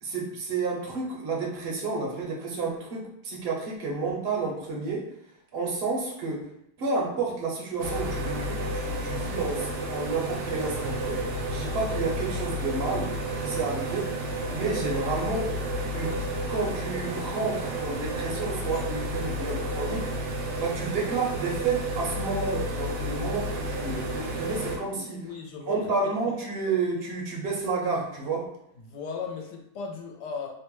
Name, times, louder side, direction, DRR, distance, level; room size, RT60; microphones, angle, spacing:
voice 1, 0.0-5.1 5.5-6.5 6.8-11.2 11.5-13.1 13.4-14.1 14.5-15.5 15.9-20.1 20.6-25.3 25.7-28.5, right 3 dB, 55° right, -2 dB, 0.7 m, -30 dB
sound 1, 7.8-24.8, right 1 dB, 75° right, 1.1 m, -31 dB
voice 2, 24.9-25.8 26.3-26.4 28.8-30.5, left 5 dB, 85° left, 0 dB, 1.2 m, -37 dB
2.9 x 2.1 x 3.0 m, 0.77 s
omnidirectional pair, 1.7 m